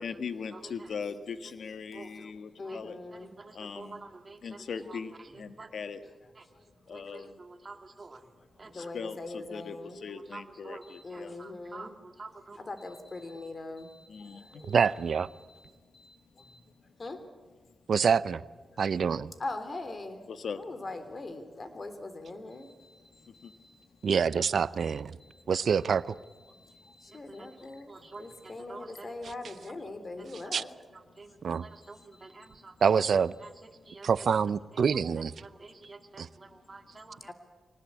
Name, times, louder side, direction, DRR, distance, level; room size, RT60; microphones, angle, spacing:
voice 1, 0.0-3.0 3.5-4.0 4.4-5.1 5.4-6.0 6.9-7.3 8.7-11.3 14.1-14.4 20.3-20.6, left 6 dB, 75° left, 9 dB, 1.5 m, -39 dB
voice 2, 1.9-2.3 2.6-2.8 3.1-5.0 5.6-5.7 6.9-8.2 8.6-8.9 10.1-10.8 11.1-12.7 27.1-27.2 27.9-28.3 28.7-29.1 30.2-30.3 31.2-32.7 33.4-34.1 35.4-37.3, right 3 dB, 40° right, 6 dB, 2.2 m, -48 dB
voice 3, 2.6-3.3 6.5-7.0 8.2-10.0 10.8-12.0 12.5-16.6 17.0-17.2 18.7-18.8 19.4-20.2 20.6-23.9 24.4-25.4 25.7-30.7 31.5-32.6 37.3-37.4, left 2 dB, 40° left, 9 dB, 3.5 m, -43 dB
voice 4, 14.7-15.3 17.9-18.4 18.8-19.3 24.0-25.2 25.5-26.1 30.5-30.6 31.4-31.7 32.8-33.3 34.0-35.3 36.2-36.3, right 6 dB, 70° right, 17 dB, 0.6 m, -26 dB
24.5 x 19.0 x 8.5 m, 1.4 s
cardioid pair, 60°, 0 cm